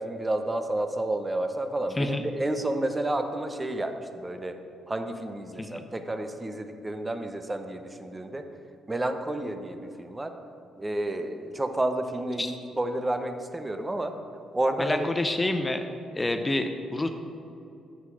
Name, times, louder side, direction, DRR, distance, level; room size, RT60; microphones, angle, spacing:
voice 1, 0.0-4.5 4.9-8.4 8.9-10.3 10.8-14.1 14.5-15.1, right 1 dB, 15° right, 7 dB, 0.7 m, -30 dB
voice 2, 2.0-2.3 5.6-5.8 12.4-12.5 14.8-15.8 16.1-17.1, left 2 dB, 20° left, 7 dB, 0.6 m, -28 dB
9.4 x 5.8 x 6.3 m, 2.8 s
cardioid pair, 90°, 0 cm